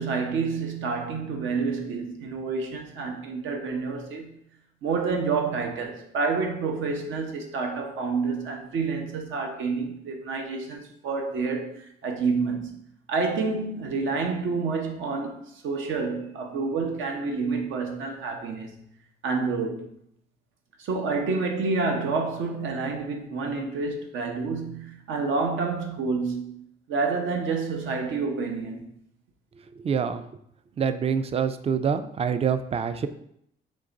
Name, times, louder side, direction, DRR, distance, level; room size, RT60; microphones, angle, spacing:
voice 1, 0.0-4.4 4.8-12.7 13.1-18.7 19.2-19.9 20.8-26.6 26.9-28.9, right 4 dB, 80° right, 0.8 m, -28 dB
voice 2, 29.8-30.2 30.8-33.1, right 7 dB, 30° right, 0.3 m, -26 dB
3.8 x 3.0 x 3.8 m
cardioid pair, 90°, 20 cm